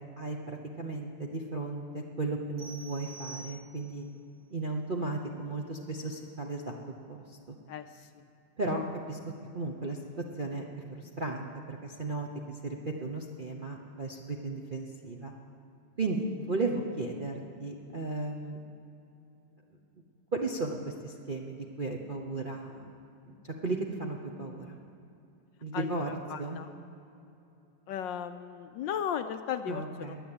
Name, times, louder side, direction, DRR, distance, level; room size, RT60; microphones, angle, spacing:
voice 1, 0.2-4.0 4.5-6.7 7.1-7.6 8.6-8.8 9.1-9.2 9.5-10.6 10.9-15.3 16.0-18.6 20.3-22.9 23.3-24.8 25.6-26.1 26.4-26.6 29.7-30.2, right 2 dB, 40° right, 0 dB, 0.7 m, -35 dB
sound 1, 2.6-4.1, right 3 dB, 75° right, 4.0 m, -47 dB
voice 2, 7.7-8.3 25.7-26.7 27.9-30.1, left 8 dB, 70° left, 9 dB, 1.1 m, -36 dB
21.0 x 7.9 x 8.8 m, 2.8 s
omnidirectional pair, 2.3 m